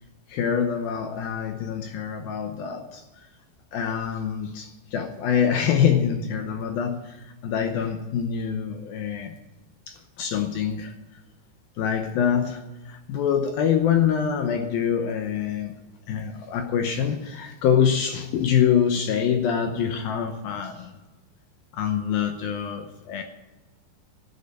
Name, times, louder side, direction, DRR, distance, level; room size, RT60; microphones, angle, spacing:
voice 1, 0.3-3.3 3.7-9.3 9.9-10.9 11.8-15.8 16.1-20.9 21.7-23.2, left 8 dB, 75° left, 6 dB, 2.3 m, -25 dB
12.0 x 9.8 x 8.2 m, 1.1 s
omnidirectional pair, 5.2 m